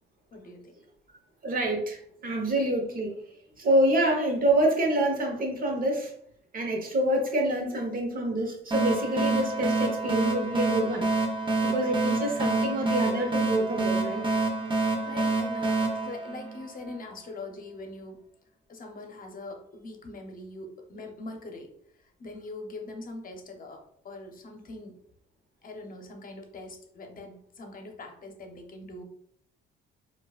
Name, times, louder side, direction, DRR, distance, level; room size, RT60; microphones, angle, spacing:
voice 1, 0.3-0.7 15.0-18.3 18.7-21.7 22.0-25.0 25.6-29.0, left 2 dB, 45° left, 3 dB, 0.8 m, -42 dB
voice 2, 1.4-3.2 3.6-6.1 6.5-11.1 11.6-14.2, right 1 dB, 45° right, 2 dB, 1.1 m, -27 dB
sound 1, 8.7-17.0, right 3 dB, 25° right, 0.8 m, -27 dB
4.7 x 2.5 x 2.4 m, 0.67 s
cardioid pair, 90°, 20 cm